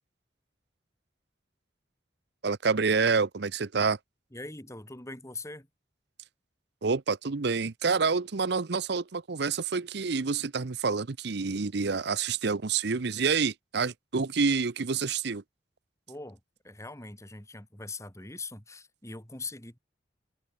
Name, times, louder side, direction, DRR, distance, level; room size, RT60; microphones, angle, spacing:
voice 1, 2.4-4.0 6.8-15.4, right 5 dB, 65° right, 0.7 m, -28 dB
voice 2, 4.3-5.7 16.1-16.4 16.6-19.8, left 3 dB, 15° left, 3.9 m, -42 dB
head